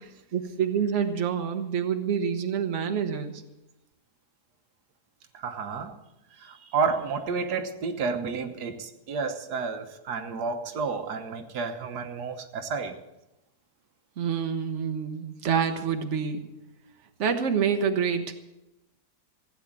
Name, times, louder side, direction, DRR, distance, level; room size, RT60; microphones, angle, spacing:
voice 1, 0.3-3.4 14.2-16.4 17.2-18.3, right 7 dB, 50° right, 6 dB, 1.4 m, -27 dB
voice 2, 5.3-5.9 6.4-13.0, right 5 dB, 85° right, 6 dB, 1.6 m, -31 dB
16.0 x 9.0 x 7.4 m, 0.94 s
omnidirectional pair, 1.7 m